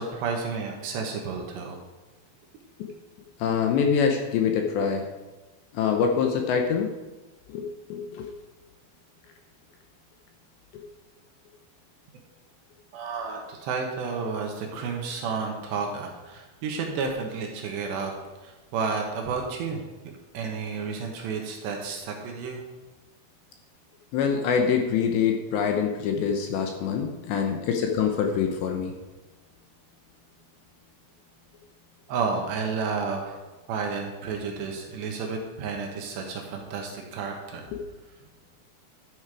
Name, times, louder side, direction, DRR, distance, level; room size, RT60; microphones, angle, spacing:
voice 1, 0.0-1.8 12.9-18.1 18.4-19.9 20.3-22.6 32.1-33.4 33.7-37.7, right 5 dB, 70° right, 1 dB, 3.2 m, -31 dB
voice 2, 3.4-5.1 5.7-6.9 7.5-8.3 10.7-10.8 24.1-28.9 37.7-37.8, left 6 dB, 75° left, 3 dB, 2.8 m, -25 dB
12.5 x 9.2 x 4.9 m, 1.2 s
omnidirectional pair, 5.8 m